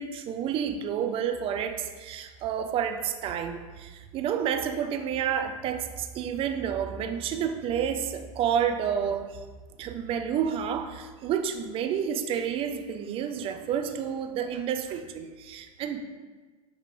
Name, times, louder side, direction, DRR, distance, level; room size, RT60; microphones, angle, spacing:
voice 1, 0.0-9.4 9.8-16.0, right 8 dB, 30° right, 7 dB, 0.4 m, -30 dB
6.1 x 2.6 x 2.6 m, 1.4 s
hypercardioid pair, 95°, 18 cm